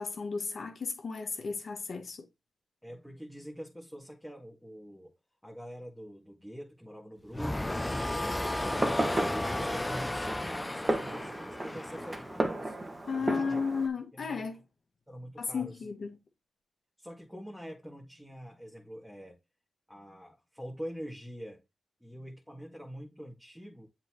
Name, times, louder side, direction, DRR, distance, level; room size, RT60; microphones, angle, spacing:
voice 1, 0.0-2.2 13.1-14.6 15.4-16.2, left 5 dB, 60° left, 1.6 m, -34 dB
voice 2, 2.8-5.1 5.4-9.1 9.5-12.8 13.2-13.7 14.1-14.4 15.1-15.8 17.0-19.4 19.9-21.6 22.0-23.9, equal, ahead, 2.0 m, -45 dB
sound 1, 7.3-12.5, left 1 dB, 15° left, 0.5 m, -34 dB
Fireworks, 8.6-13.9, right 1 dB, 30° right, 1.6 m, -34 dB
7.7 x 4.1 x 3.1 m
supercardioid pair, 50°, 0 cm